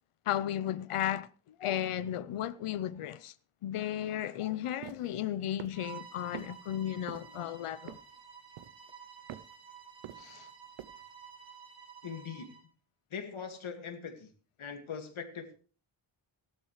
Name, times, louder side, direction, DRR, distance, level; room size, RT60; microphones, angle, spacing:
voice 1, 0.3-3.3 3.6-8.0 10.2-10.5, left 11 dB, 85° left, 0.8 m, -34 dB
sound 1, 4.8-5.0 5.6-5.9 6.3-6.5 7.1-7.4 7.9-8.2 8.6-8.9 9.3-9.5 10.0-10.5 10.8-11.0, right 11 dB, 85° right, 0.8 m, -45 dB
Bowed string instrument, 5.7-12.7, right 7 dB, 60° right, 4.8 m, -51 dB
voice 2, 12.0-12.5 13.1-14.3 14.6-15.6, left 6 dB, 70° left, 2.1 m, -41 dB
16.5 x 12.0 x 3.2 m
wide cardioid pair, 120°, 50 cm